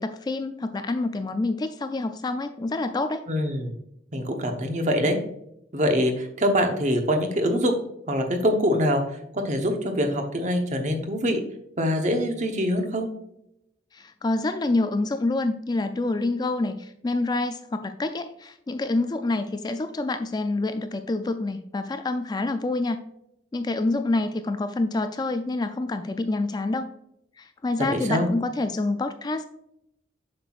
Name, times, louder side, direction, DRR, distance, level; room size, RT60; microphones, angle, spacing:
voice 1, 0.0-3.2 13.9-23.0 23.5-26.9 27.4-29.5, left 2 dB, 20° left, 9 dB, 0.3 m, -27 dB
voice 2, 3.3-3.7 4.1-5.2 5.7-7.8 8.1-9.0 9.3-11.4 11.8-13.1 27.9-28.3, equal, 40° right, 4 dB, 1.0 m, -24 dB
7.5 x 6.0 x 2.4 m, 0.80 s
head